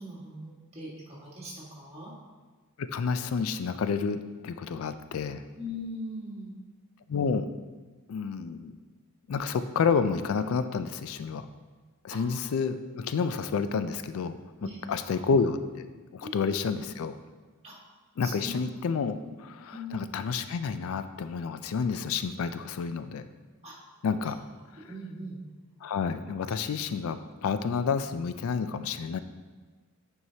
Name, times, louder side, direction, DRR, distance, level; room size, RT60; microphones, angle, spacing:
voice 1, 0.0-2.1 5.6-6.6 12.1-12.2 14.6-14.8 15.1-15.2 16.2-16.7 17.6-17.8 18.2-18.7 19.7-20.0 23.6-23.8 24.2-24.3 24.7-25.4, left 1 dB, 30° right, -5 dB, 1.7 m, -41 dB
voice 2, 2.8-5.4 7.1-7.5 8.1-8.8 9.3-11.5 12.0-14.4 14.9-15.9 16.1-17.1 18.2-19.2 19.9-23.3 24.0-24.4 25.8-29.2, left 5 dB, 65° left, 11 dB, 0.3 m, -29 dB
9.4 x 4.6 x 2.8 m, 1.4 s
head